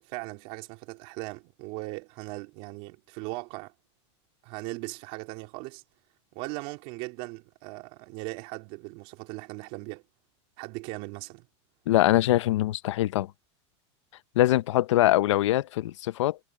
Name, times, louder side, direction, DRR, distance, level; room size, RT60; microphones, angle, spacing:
voice 1, 0.0-3.7 4.4-5.8 6.3-10.0 10.6-11.5, right 24 dB, 45° right, 3.7 m, -39 dB
voice 2, 11.9-13.3 14.4-16.4, left 15 dB, 90° left, 0.8 m, -23 dB
supercardioid pair, 170°, 15 cm